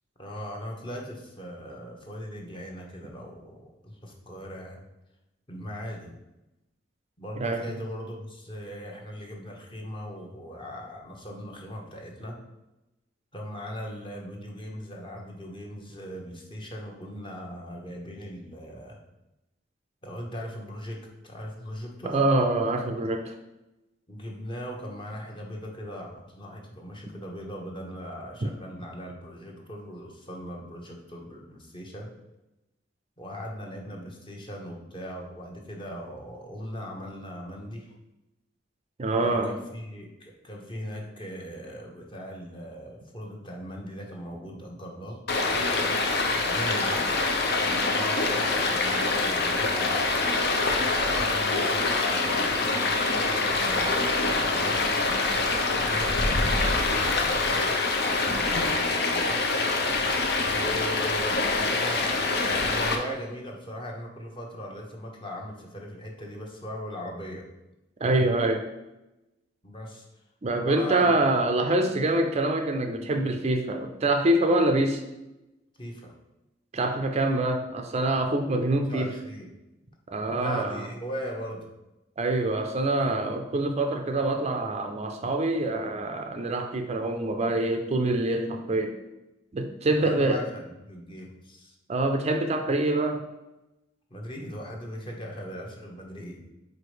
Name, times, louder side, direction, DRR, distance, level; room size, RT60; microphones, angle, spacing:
voice 1, 0.2-4.8 5.5-6.1 7.2-12.4 13.3-19.0 20.0-22.2 24.1-32.1 33.2-37.9 39.2-45.2 46.4-47.2 47.6-50.3 51.0-54.8 55.7-57.8 58.1-59.4 60.5-67.4 69.6-70.0 70.6-71.1 75.8-76.1 78.9-79.5 80.3-81.7 90.0-91.7 94.1-96.4, equal, 25° left, 0 dB, 1.0 m, -39 dB
voice 2, 7.4-7.7 22.0-23.3 39.0-39.6 68.0-68.7 70.4-75.0 76.7-79.1 80.1-80.8 82.2-88.9 89.5-90.4 91.9-93.3, right 2 dB, 35° right, 5 dB, 0.5 m, -25 dB
Stream, 45.3-63.0, left 3 dB, 60° left, 0.7 m, -25 dB
4.9 x 4.2 x 4.9 m, 0.97 s
head